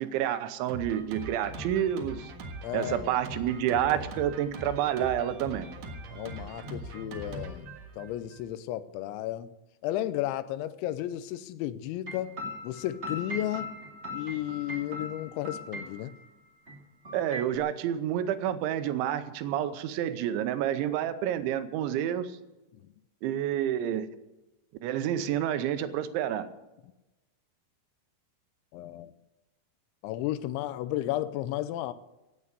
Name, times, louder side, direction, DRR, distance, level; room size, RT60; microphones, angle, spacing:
voice 1, 0.0-2.3 2.7-5.7 17.1-22.3 23.2-24.1 24.8-26.5, right 10 dB, 90° right, 3.2 m, -29 dB
Drum kit, 0.7-8.5, right 1 dB, 60° right, 2.5 m, -41 dB
voice 2, 2.6-3.1 6.1-9.5 9.8-12.4 12.6-13.7 14.1-16.2 28.7-29.1 30.0-31.9, left 13 dB, 85° left, 3.0 m, -33 dB
sound 1, 12.1-16.3 16.7-16.8 17.0-17.6, left 1 dB, 30° right, 1.1 m, -39 dB
17.0 x 8.6 x 8.1 m
omnidirectional pair, 5.3 m